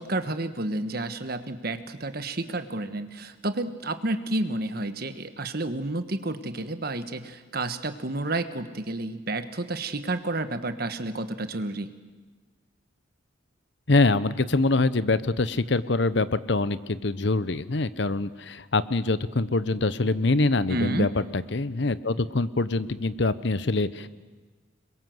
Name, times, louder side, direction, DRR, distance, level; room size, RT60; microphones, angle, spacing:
voice 1, 0.0-11.9 20.7-21.1, right 2 dB, 50° right, 10 dB, 1.4 m, -30 dB
voice 2, 13.9-24.1, left 3 dB, 55° left, 15 dB, 0.8 m, -24 dB
26.0 x 22.5 x 7.9 m, 1.4 s
head